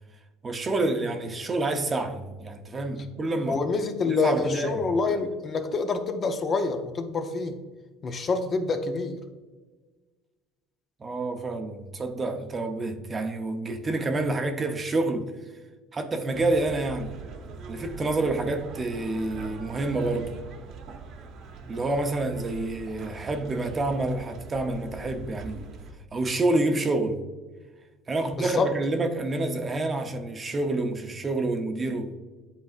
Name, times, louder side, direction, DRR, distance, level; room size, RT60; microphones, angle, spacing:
voice 1, 0.4-3.6 4.1-4.8 11.0-15.3 15.9-17.1 17.7-20.3 21.7-25.7 26.1-27.2 28.1-32.2, right 2 dB, 25° right, 0.7 m, -28 dB
voice 2, 3.5-7.6 8.0-9.2 28.4-28.7, left 4 dB, 30° left, 0.6 m, -27 dB
sound 1, 16.3-25.9, right 4 dB, 55° right, 1.0 m, -42 dB
10.0 x 4.1 x 2.5 m
cardioid pair, 125°, 0 cm